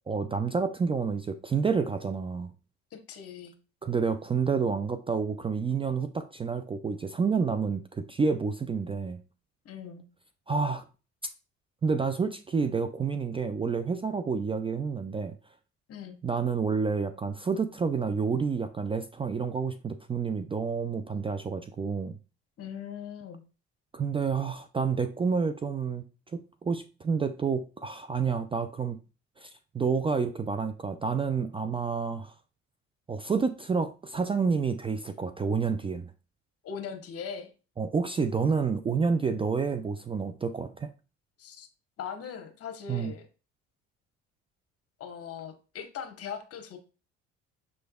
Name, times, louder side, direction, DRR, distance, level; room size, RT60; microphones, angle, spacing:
voice 1, 0.1-2.5 3.8-9.2 10.5-10.8 11.8-15.3 16.2-22.2 23.9-26.0 26.3-29.0 29.4-29.5 29.7-32.3 33.1-36.1 37.8-40.9 42.9-43.1, right 5 dB, 20° right, 9 dB, 0.3 m, -29 dB
voice 2, 2.9-3.5 9.6-10.0 15.9-16.2 22.6-23.4 36.6-37.5 41.4-41.7 42.0-43.3 45.0-46.8, left 7 dB, 55° left, 7 dB, 1.1 m, -40 dB
6.1 x 3.3 x 2.3 m, 0.33 s
supercardioid pair, 80°, 29 cm